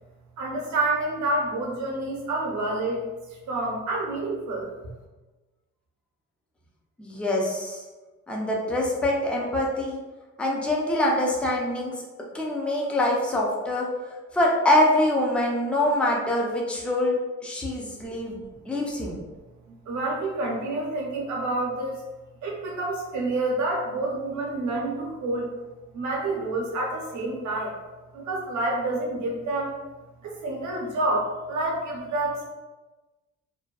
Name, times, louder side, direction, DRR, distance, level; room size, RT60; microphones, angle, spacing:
voice 1, 0.4-3.1 3.5-4.7 19.7-22.0 22.4-25.5 25.9-27.8 28.1-29.7 30.2-32.5, right 2 dB, 70° right, -1 dB, 0.8 m, -28 dB
voice 2, 7.0-7.8 8.3-10.0 10.4-11.9 12.3-13.9 14.3-17.2 17.4-18.4 18.7-19.2, left 1 dB, 5° left, -3 dB, 0.5 m, -24 dB
2.6 x 2.2 x 2.3 m, 1.2 s
cardioid pair, 90°, 30 cm